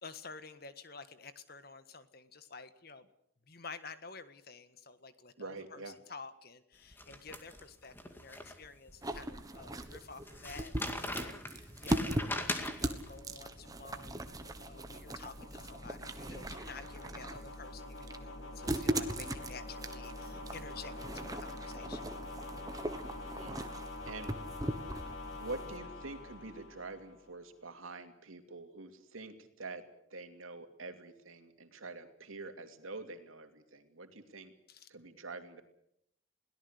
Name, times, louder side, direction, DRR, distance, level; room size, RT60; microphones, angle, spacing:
voice 1, 0.0-3.1 3.5-22.2 34.7-34.9, left 4 dB, 50° left, 11 dB, 1.6 m, -51 dB
voice 2, 5.4-6.0 23.0-23.7 24.0-24.3 25.4-29.8 30.1-34.5 34.9-35.6, right 3 dB, 90° right, 6 dB, 2.8 m, -46 dB
sound 1, 6.9-8.9 9.4-9.5 10.3-13.1, left 1 dB, 10° left, 2.1 m, -40 dB
sound 2, 9.0-25.8, right 1 dB, 20° right, 1.4 m, -39 dB
sound 3, 11.4-27.3, left 2 dB, 85° left, 6.5 m, -46 dB
22.5 x 17.5 x 8.3 m, 0.72 s
head